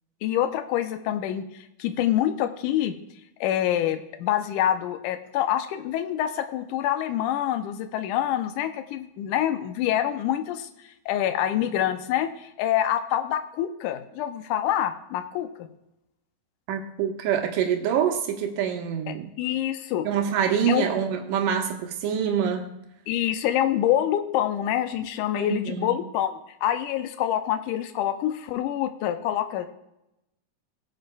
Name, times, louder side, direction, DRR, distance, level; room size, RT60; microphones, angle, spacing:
voice 1, 0.2-1.5 1.8-3.0 3.4-10.7 11.1-15.7 19.1-20.1 20.7-20.9 23.1-29.7, left 11 dB, 80° left, 8 dB, 2.2 m, -26 dB
voice 2, 16.7-19.3 20.0-22.7 25.3-26.0, right 8 dB, 85° right, 3 dB, 2.5 m, -26 dB
20.0 x 7.7 x 2.2 m, 0.88 s
omnidirectional pair, 3.7 m